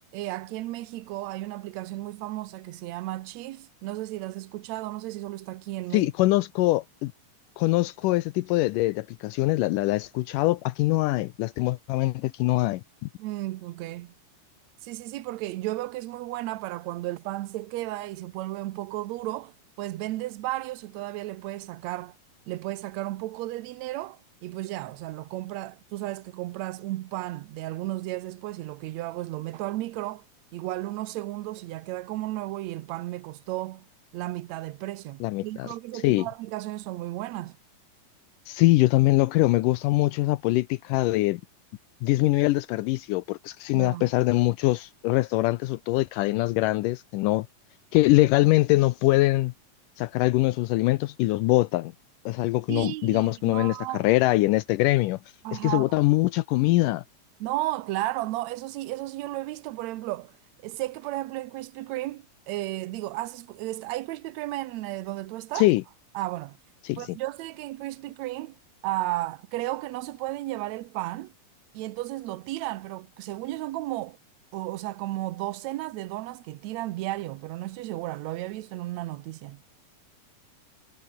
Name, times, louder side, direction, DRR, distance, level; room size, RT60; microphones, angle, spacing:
voice 1, 0.1-6.1 13.2-14.1 14.8-22.2 22.5-30.2 30.5-33.9 34.1-37.6 43.7-44.1 52.7-54.1 55.4-55.9 57.4-60.4 60.6-65.7 66.1-66.6 67.0-68.6 68.8-71.3 71.7-74.2 74.5-79.6, right 17 dB, 70° right, 1.8 m, -34 dB
voice 2, 5.9-7.1 7.6-12.8 35.2-36.3 38.5-41.4 42.0-47.5 47.9-49.5 50.0-51.9 52.3-55.2 55.6-57.0 65.6-65.8 66.8-67.2, left 19 dB, 80° left, 2.2 m, -23 dB
omnidirectional pair, 3.8 m